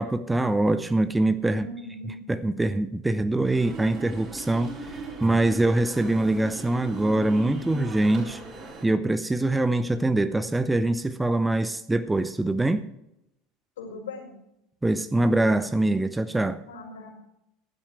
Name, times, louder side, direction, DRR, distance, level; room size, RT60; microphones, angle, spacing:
voice 1, 0.0-1.7 2.3-8.4 8.8-12.9 14.8-16.6, right 2 dB, 10° right, 12 dB, 0.8 m, -24 dB
voice 2, 1.5-2.2 13.8-14.4 16.7-17.1, left 2 dB, 70° left, 1 dB, 4.9 m, -39 dB
sound 1, 3.4-8.8, right 3 dB, 35° right, 4.3 m, -39 dB
16.0 x 12.0 x 3.3 m, 0.82 s
figure-of-eight pair, 75°, 0 cm